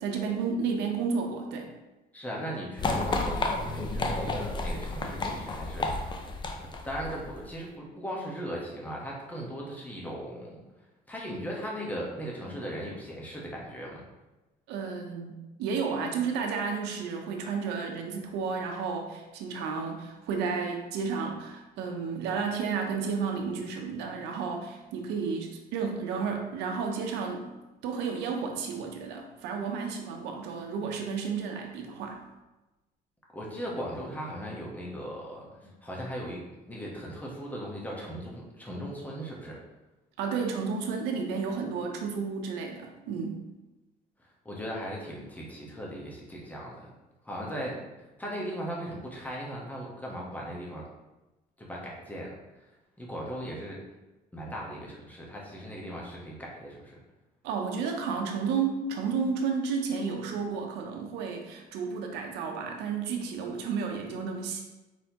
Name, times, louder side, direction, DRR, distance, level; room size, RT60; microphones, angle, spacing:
voice 1, 0.0-1.7 14.7-27.5 27.8-32.2 40.2-43.4 57.4-64.6, right 5 dB, 90° right, 2 dB, 0.7 m, -32 dB
voice 2, 2.1-6.2 6.6-10.6 11.1-14.0 33.3-36.4 36.7-39.6 44.4-46.9 47.2-47.8 48.2-50.9 51.6-52.3 53.0-53.8 54.3-57.0, equal, 10° left, -3 dB, 1.1 m, -38 dB
sound 1, 2.8-7.5, left 2 dB, 25° left, 0.5 m, -31 dB
4.2 x 4.1 x 2.9 m, 1.1 s
cardioid pair, 110°, 17 cm